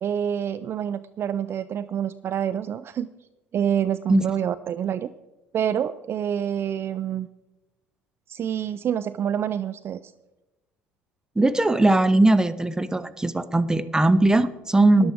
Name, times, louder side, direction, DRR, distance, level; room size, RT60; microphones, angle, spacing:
voice 1, 0.0-3.1 3.5-5.1 5.5-7.3 8.3-10.0 15.0-15.1, right 9 dB, 45° right, 14 dB, 0.4 m, -27 dB
voice 2, 11.4-15.1, right 2 dB, 10° right, 13 dB, 0.9 m, -19 dB
13.5 x 11.5 x 4.6 m, 1.0 s
hypercardioid pair, 60°, 6 cm